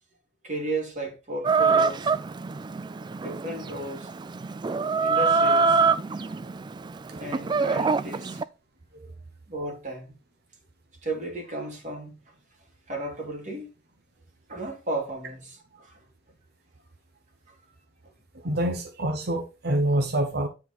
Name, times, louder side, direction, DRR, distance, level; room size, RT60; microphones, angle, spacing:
voice 1, 0.4-2.1 3.2-4.1 5.0-5.8 6.2-6.4 7.1-8.4 9.5-10.1 11.0-12.2 12.9-13.7 14.5-16.0 17.5-17.6, right 1 dB, 40° right, 2.8 m, -34 dB
Chicken rooster, 1.4-8.4, right 4 dB, 25° right, 0.3 m, -25 dB
voice 2, 18.4-20.5, right 1 dB, 60° right, 1.0 m, -26 dB
9.5 x 4.5 x 4.1 m
head